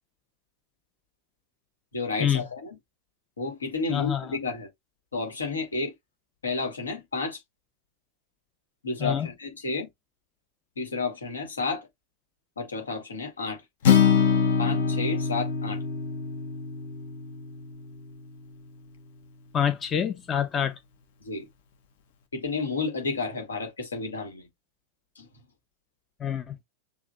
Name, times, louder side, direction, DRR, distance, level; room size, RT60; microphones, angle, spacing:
voice 1, 1.9-2.8 3.4-4.7 5.1-5.9 6.4-7.4 8.8-9.9 10.8-11.9 12.6-13.6 14.6-15.8 21.2-21.5 22.3-24.5 25.2-25.3, left 4 dB, 75° left, 2.1 m, -31 dB
voice 2, 3.9-4.3 9.0-9.3 19.5-20.8 26.2-26.5, left 9 dB, 25° left, 0.7 m, -26 dB
Acoustic guitar, 13.8-18.1, left 6 dB, 55° left, 1.1 m, -24 dB
7.0 x 2.6 x 2.4 m
figure-of-eight pair, 90°, 0 cm